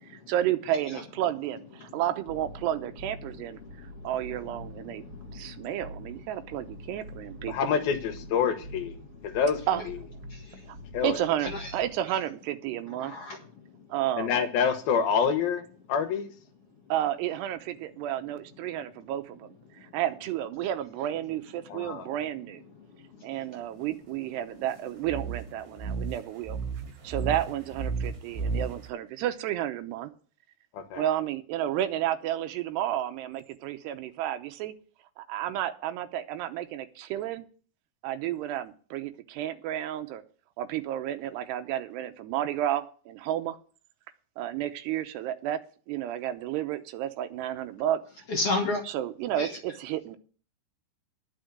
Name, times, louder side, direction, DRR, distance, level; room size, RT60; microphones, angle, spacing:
voice 1, 0.1-5.0 5.3-7.7 9.7-9.8 10.7-10.8 11.0-13.1 13.9-14.4 16.9-22.6 23.2-26.6 27.0-30.1 31.0-34.8 35.2-37.5 38.0-40.2 40.6-43.6 44.4-45.6 45.9-48.0 48.9-50.2, right 12 dB, 85° right, 8 dB, 3.0 m, -31 dB
sound 1, 2.2-11.9, equal, 25° right, 4.4 m, -46 dB
voice 2, 4.8-5.7 10.3-10.7 11.5-11.6 13.0-13.4 48.3-48.8 49.4-49.5, left 2 dB, 50° left, 1 dB, 1.8 m, -32 dB
voice 3, 7.5-9.0 9.2-9.6 10.9-11.2 14.2-15.6 15.9-16.3 21.7-22.1 30.7-31.0, left 6 dB, 70° left, 7 dB, 2.8 m, -26 dB
sound 2, 25.0-28.9, right 4 dB, 55° right, 4.9 m, -33 dB
10.5 x 6.0 x 8.1 m, 0.41 s
omnidirectional pair, 4.8 m